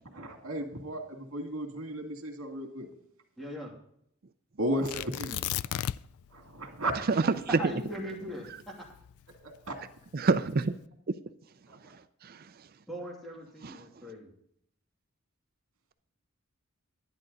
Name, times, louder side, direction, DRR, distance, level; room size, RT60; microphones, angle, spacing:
voice 1, 0.1-2.9 4.6-5.8 6.3-7.0 9.4-9.8 11.7-11.9, right 1 dB, 70° right, 3 dB, 2.2 m, -35 dB
voice 2, 3.4-3.7 7.6-8.9 12.9-14.3, equal, ahead, -2 dB, 2.6 m, -40 dB
Tearing, 4.9-6.3 6.5-6.6 7.2-9.6 10.3-10.7, left 11 dB, 85° left, 0.3 m, -35 dB
voice 3, 10.1-10.7 11.9-12.7 13.6-14.0, right 3 dB, 45° right, 12 dB, 0.5 m, -29 dB
11.0 x 11.0 x 3.9 m, 0.69 s
head